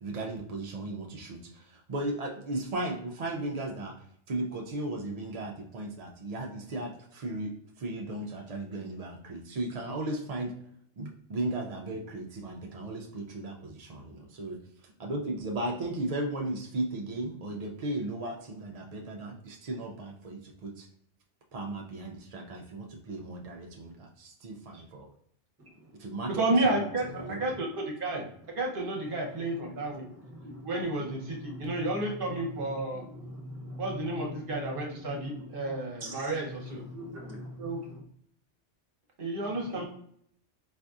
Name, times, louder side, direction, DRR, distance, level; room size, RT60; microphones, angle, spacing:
voice 1, 0.0-4.0 4.3-7.5 7.8-10.5 11.0-14.6 15.0-20.9 21.5-25.1 26.0-27.4, right 2 dB, 75° right, 0.3 m, -36 dB
voice 2, 25.6-26.3 27.0-27.6 28.1-28.2 28.9-38.0 39.4-39.8, equal, 15° right, 0.6 m, -44 dB
voice 3, 26.3-28.2 28.6-30.0 30.6-33.0 33.8-36.4 36.7-36.8 37.6-37.8 39.2-39.8, right 2 dB, 50° right, 0.8 m, -31 dB
4.2 x 2.6 x 2.3 m
omnidirectional pair, 1.2 m